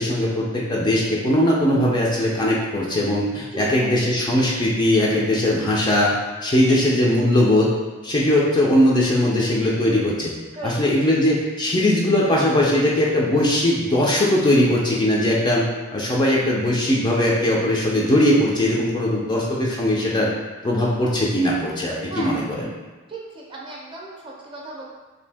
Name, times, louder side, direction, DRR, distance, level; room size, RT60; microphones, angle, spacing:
voice 1, 0.0-6.1 6.4-7.7 8.0-10.3 10.6-15.6 15.9-20.3 20.6-22.7, left 1 dB, 20° left, -4 dB, 0.4 m, -20 dB
voice 2, 3.5-3.9 6.6-6.8 10.6-11.1 22.1-22.3 23.1-24.9, right 2 dB, 25° right, -3 dB, 0.6 m, -35 dB
2.7 x 2.6 x 3.4 m, 1.3 s
head